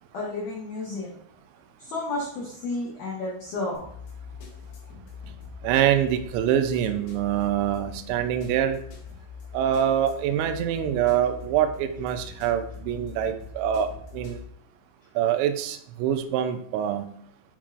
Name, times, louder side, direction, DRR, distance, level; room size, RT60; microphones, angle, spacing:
voice 1, 0.1-1.1 1.8-3.9, left 2 dB, 85° left, -4 dB, 1.8 m, -31 dB
sound 1, 3.7-14.4, left 6 dB, 70° left, 3.8 m, -42 dB
voice 2, 5.6-8.8 9.5-14.4 15.2-17.1, right 10 dB, 80° right, 8 dB, 2.6 m, -25 dB
8.8 x 4.6 x 2.5 m, 0.66 s
omnidirectional pair, 5.6 m